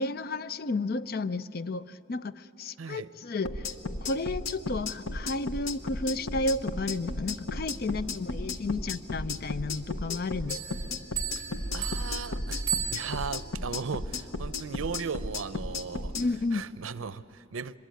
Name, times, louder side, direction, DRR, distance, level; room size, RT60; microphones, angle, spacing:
voice 1, 0.0-3.7 4.0-10.6 16.2-16.6, left 2 dB, 45° left, 15 dB, 0.5 m, -32 dB
voice 2, 2.8-3.1 11.7-12.6 12.9-16.1 16.5-17.8, right 5 dB, 80° right, 15 dB, 0.6 m, -37 dB
sound 1, 3.4-16.3, left 3 dB, 85° left, 1.1 m, -34 dB
Insect, 5.8-8.1 8.5-10.0 11.6-13.3, equal, 5° left, 5.7 m, -40 dB
sound 2, 10.5-13.5, right 9 dB, 15° right, 3.6 m, -35 dB
24.0 x 21.0 x 9.2 m, 3.0 s
head